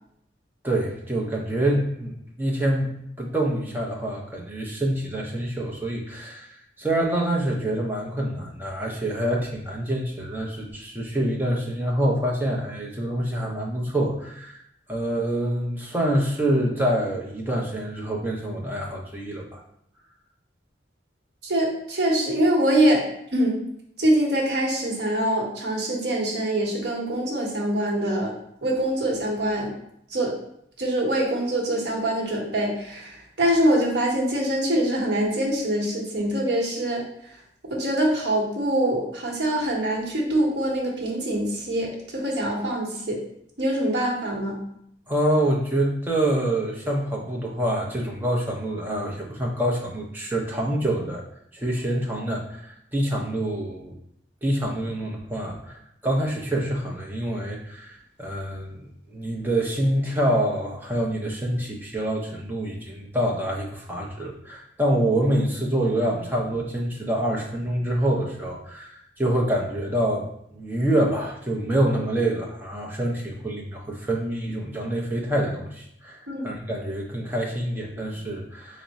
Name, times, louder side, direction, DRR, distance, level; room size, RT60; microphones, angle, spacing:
voice 1, 0.6-2.9 3.2-6.5 6.8-14.6 14.9-19.6 45.1-51.2 51.5-53.9 54.4-76.2 76.4-78.8, right 1 dB, 10° right, -2 dB, 0.5 m, -26 dB
voice 2, 21.4-23.0 23.3-23.6 24.0-28.3 28.6-29.7 30.1-30.3 30.8-37.4 37.7-43.2 43.6-44.6 76.3-76.5, right 1 dB, 65° right, -2 dB, 0.9 m, -24 dB
3.5 x 2.0 x 4.0 m, 0.73 s
head